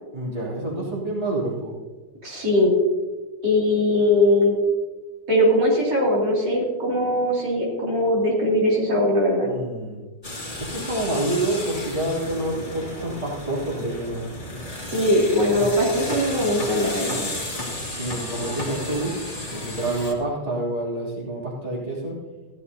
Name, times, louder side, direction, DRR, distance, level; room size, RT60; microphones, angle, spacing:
voice 1, 0.1-1.7 9.4-10.0 10.6-14.2 15.5-15.7 17.9-19.1 19.4-22.2, right 1 dB, 20° right, -6 dB, 2.9 m, -28 dB
voice 2, 2.2-2.8 3.4-4.6 5.3-9.5 14.9-17.3, left 1 dB, 75° right, -4 dB, 3.4 m, -20 dB
sound 1, 10.2-20.1, left 1 dB, 20° left, 2.0 m, -33 dB
15.0 x 12.5 x 2.7 m, 1.3 s
omnidirectional pair, 1.9 m